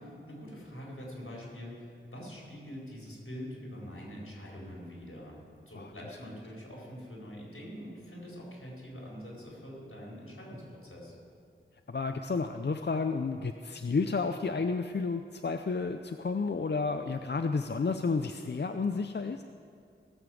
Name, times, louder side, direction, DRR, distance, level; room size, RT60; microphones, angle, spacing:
voice 1, 0.0-5.4 5.7-11.1, equal, 80° left, -4 dB, 4.3 m, -44 dB
voice 2, 11.9-19.4, left 4 dB, 55° left, 7 dB, 0.5 m, -31 dB
18.0 x 6.9 x 7.7 m, 2.4 s
wide cardioid pair, 50°, 21 cm